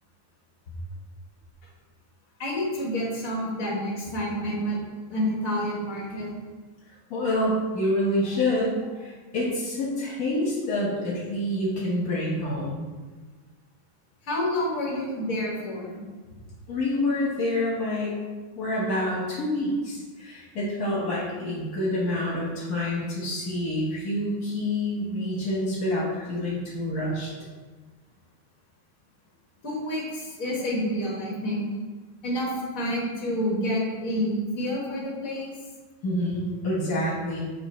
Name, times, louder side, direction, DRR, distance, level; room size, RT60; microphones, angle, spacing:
voice 1, 2.4-4.8 5.1-6.3 14.2-16.0 29.6-31.7 32.2-35.5, equal, 65° left, -3 dB, 1.9 m, -28 dB
voice 2, 7.1-12.9 16.7-18.2 18.6-27.5 36.0-37.4, left 1 dB, 80° left, -6 dB, 1.8 m, -27 dB
7.4 x 3.1 x 4.3 m, 1.3 s
omnidirectional pair, 1.6 m